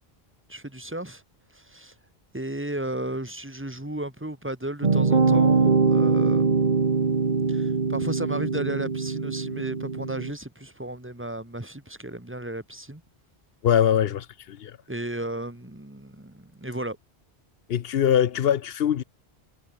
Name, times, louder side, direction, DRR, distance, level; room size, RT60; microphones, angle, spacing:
voice 1, 0.5-1.2 1.5-1.9 2.3-13.0 14.9-17.0, right 1 dB, 10° right, 2.2 m, -34 dB
sound 1, 4.8-10.3, right 4 dB, 45° right, 1.5 m, -22 dB
voice 2, 13.6-14.8 17.7-19.0, left 9 dB, 70° left, 0.9 m, -22 dB
omnidirectional pair, 1.1 m